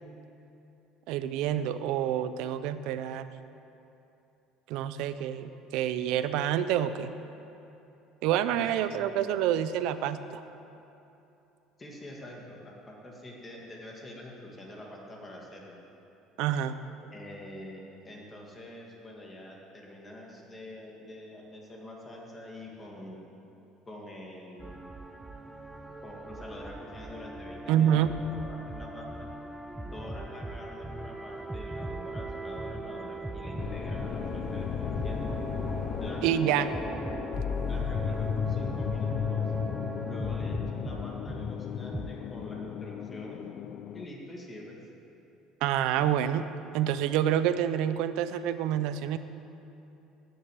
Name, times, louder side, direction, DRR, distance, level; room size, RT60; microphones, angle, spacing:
voice 1, 1.1-3.3 4.7-7.1 8.2-10.4 16.4-16.7 27.7-28.1 36.2-36.7 45.6-46.5 46.7-49.2, right 10 dB, 70° right, 12 dB, 0.7 m, -27 dB
voice 2, 8.5-9.2 11.8-15.8 17.1-23.2 23.9-24.8 26.0-29.3 29.7-35.3 36.0-36.9 37.7-39.4 40.0-43.4 43.9-44.8, left 1 dB, 20° left, -2 dB, 2.0 m, -45 dB
sound 1, 24.6-42.1, right 2 dB, 5° right, 0.6 m, -39 dB
sound 2, 33.6-44.0, left 8 dB, 45° left, 0.4 m, -34 dB
13.5 x 7.9 x 9.0 m, 2.9 s
cardioid pair, 150°, 0 cm